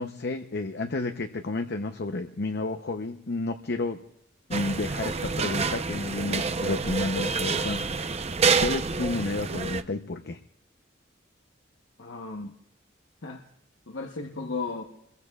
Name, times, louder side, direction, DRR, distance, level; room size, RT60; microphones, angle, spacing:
voice 1, 0.0-4.0 4.5-8.1 8.6-10.4, left 2 dB, 60° left, 6 dB, 0.7 m, -31 dB
sound 1, 4.5-9.8, right 4 dB, 35° right, 0.7 m, -28 dB
voice 2, 12.0-12.6 13.2-13.4 13.9-14.8, left 3 dB, 80° left, 3 dB, 1.0 m, -35 dB
28.0 x 21.5 x 2.4 m, 0.77 s
head